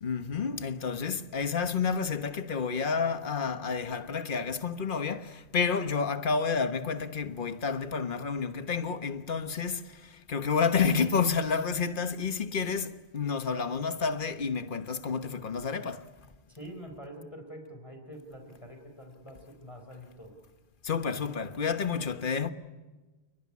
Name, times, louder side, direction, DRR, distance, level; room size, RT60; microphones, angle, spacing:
voice 1, 0.0-9.8 10.3-16.0 20.8-22.5, left 5 dB, 50° left, 1.4 m, -30 dB
voice 2, 16.5-20.4, equal, 30° left, 4.2 m, -46 dB
29.0 x 21.0 x 9.7 m
omnidirectional pair, 1.1 m